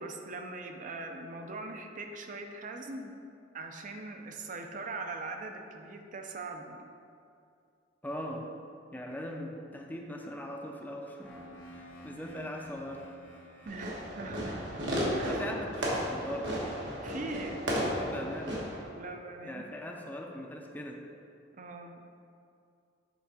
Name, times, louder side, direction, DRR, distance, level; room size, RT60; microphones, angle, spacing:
voice 1, 0.0-3.2 3.5-6.9 12.1-12.2 13.6-14.8 15.1-15.4 17.0-18.1 19.0-19.7 21.5-22.0, right 2 dB, 45° right, 4 dB, 0.5 m, -41 dB
voice 2, 8.0-8.5 8.9-11.4 11.7-13.2 15.2-16.5 17.6-18.6 19.4-21.0, equal, 10° left, 1 dB, 0.5 m, -40 dB
sound 1, 11.2-19.0, equal, 65° left, 1.3 m, -54 dB
Fireworks, 13.7-18.8, equal, 75° right, 1.2 m, -34 dB
7.2 x 3.6 x 4.2 m, 2.4 s
head